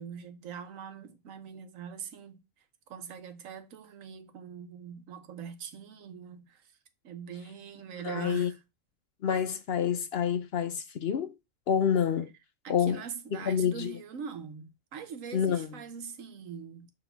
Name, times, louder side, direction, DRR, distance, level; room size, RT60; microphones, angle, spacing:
voice 1, 0.0-2.4 2.9-6.7 7.0-8.6 12.6-16.9, right 7 dB, 80° right, 1.3 m, -42 dB
voice 2, 8.0-8.5 9.2-11.3 11.7-12.3 12.7-13.0 13.5-13.9 15.3-15.7, left 8 dB, 60° left, 0.7 m, -28 dB
6.1 x 3.0 x 5.7 m
omnidirectional pair, 1.4 m